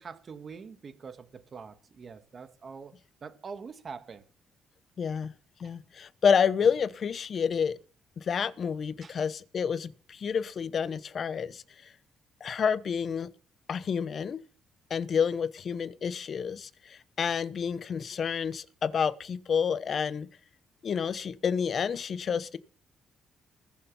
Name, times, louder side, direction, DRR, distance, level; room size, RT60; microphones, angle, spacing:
voice 1, 0.0-4.2 5.6-5.7 9.0-9.2, right 5 dB, 45° right, 1.8 m, -44 dB
voice 2, 5.0-5.3 5.6-7.8 8.2-11.6 12.4-13.3 13.7-14.4 14.9-20.3 20.8-22.6, left 6 dB, 50° left, 1.0 m, -29 dB
20.5 x 7.1 x 5.6 m
cardioid pair, 90°, 0 cm